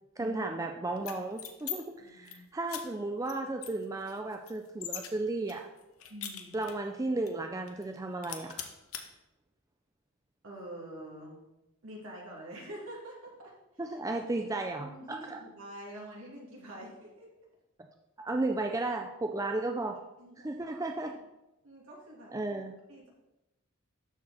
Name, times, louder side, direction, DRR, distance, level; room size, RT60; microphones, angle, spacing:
voice 1, 0.2-5.7 6.5-8.5 13.8-15.4 18.2-20.0 20.4-21.1 22.3-22.7, right 2 dB, 15° right, 4 dB, 0.4 m, -34 dB
sound 1, 1.0-1.8 2.1-2.3 2.7-2.8 3.2-3.3 3.6-5.1 5.5-6.9 7.3-7.4 7.7-8.0 8.2-9.0, left 9 dB, 70° left, 1.0 m, -41 dB
voice 2, 2.0-2.5 6.1-6.5 10.4-11.4 11.8-13.5 14.4-17.3 20.2-20.8 21.6-22.3 22.9-23.1, right 1 dB, 70° right, -3 dB, 2.6 m, -46 dB
12.5 x 4.6 x 4.2 m, 0.96 s
head